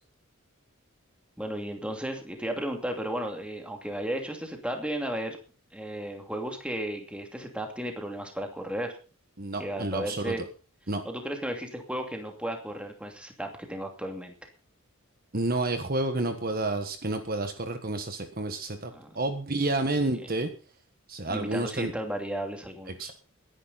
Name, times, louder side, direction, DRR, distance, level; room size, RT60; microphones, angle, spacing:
voice 1, 1.4-5.4 5.7-9.0 9.6-10.4 11.0-14.3 18.9-19.2 20.2-20.3 21.3-23.1, right 1 dB, 5° right, 3 dB, 2.6 m, -34 dB
voice 2, 9.4-10.3 10.9-11.0 15.3-20.5 21.1-21.9 22.9-23.1, right 2 dB, 45° right, 7 dB, 1.5 m, -30 dB
20.5 x 10.5 x 4.2 m, 0.36 s
head